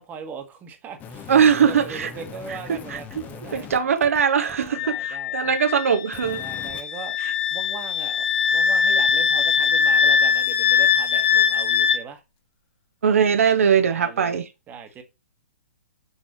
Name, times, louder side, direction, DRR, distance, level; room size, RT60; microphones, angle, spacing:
voice 1, 0.0-4.0 4.6-5.6 6.4-7.2 7.5-12.2 13.8-14.4 14.7-15.0, right 6 dB, 20° right, 1.3 m, -40 dB
sound 1, 1.0-4.7 6.1-6.8 9.1-9.2, left 6 dB, 20° left, 0.9 m, -40 dB
voice 2, 1.3-2.1 2.7-3.0 3.5-6.4 7.2-7.3 13.0-14.4, right 7 dB, 65° right, 0.7 m, -20 dB
Wind instrument woodwind instrument, 4.7-12.0, left 7 dB, 40° left, 0.8 m, -21 dB
6.3 x 5.3 x 3.0 m
figure-of-eight pair, 125°, 8 cm